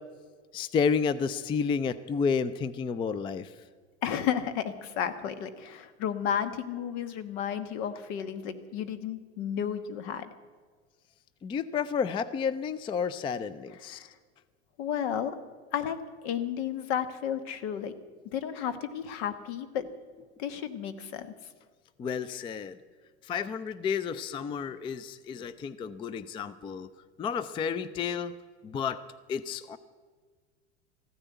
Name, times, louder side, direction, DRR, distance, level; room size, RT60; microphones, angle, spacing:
voice 1, 0.5-3.5 11.4-14.1 22.0-22.8 23.3-26.9 27.2-28.4 28.6-29.0 29.3-29.8, left 6 dB, 15° left, 16 dB, 0.3 m, -31 dB
voice 2, 4.0-10.2 13.8-14.1 14.8-15.4 15.7-16.0 16.2-17.9 18.3-19.8 20.4-21.3, left 9 dB, 65° left, 11 dB, 1.4 m, -32 dB
15.0 x 9.8 x 8.0 m, 1.5 s
supercardioid pair, 110°, 35 cm